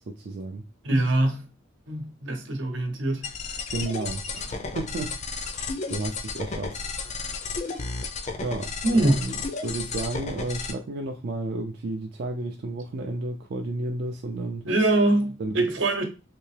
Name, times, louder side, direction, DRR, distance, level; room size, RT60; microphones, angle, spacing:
voice 1, 0.1-0.6 3.7-5.2 5.9-6.8 8.4-9.4 9.6-14.6 15.4-15.7, right 2 dB, 55° right, 0.4 m, -32 dB
voice 2, 0.8-1.5 1.9-3.3 8.8-9.1 14.6-16.0, right 2 dB, 80° right, 0.9 m, -23 dB
sound 1, 3.2-10.7, left 4 dB, 35° left, 0.5 m, -33 dB
3.3 x 2.8 x 3.2 m
head